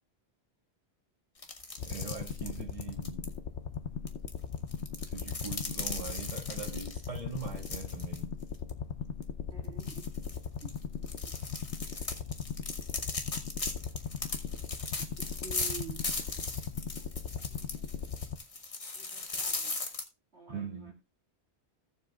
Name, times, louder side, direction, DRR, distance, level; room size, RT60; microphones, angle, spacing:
sound 1, 1.4-3.2 4.1-8.2 8.5-8.7 9.2-9.3 9.8-20.0, left 3 dB, 35° left, 1.1 m, -38 dB
sound 2, 1.8-18.4, left 7 dB, 90° left, 1.1 m, -39 dB
voice 1, 1.8-3.3 5.0-8.3 20.5-20.9, right 5 dB, 30° right, 2.5 m, -41 dB
voice 2, 9.5-10.0 10.6-10.7 15.0-15.1 15.4-16.0 16.9-17.0 17.5-17.8 18.9-19.8 20.3-20.9, right 4 dB, 80° right, 2.5 m, -48 dB
17.0 x 7.2 x 2.4 m
omnidirectional pair, 1.1 m